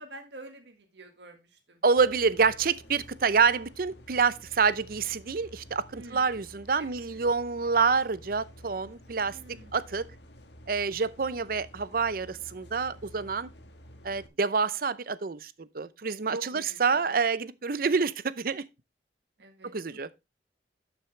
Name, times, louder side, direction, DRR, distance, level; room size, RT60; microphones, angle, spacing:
voice 1, 0.0-1.8 5.9-6.3 6.8-6.9 7.1-7.2 9.2-9.8 16.3-17.0 19.4-19.7, right 2 dB, 75° right, 1.7 m, -46 dB
voice 2, 1.8-9.4 9.7-10.1 10.7-13.5 14.0-18.6 19.6-20.1, right 5 dB, 50° right, 0.6 m, -27 dB
sound 1, 2.0-14.3, equal, 75° left, 1.5 m, -51 dB
12.0 x 6.2 x 3.2 m
head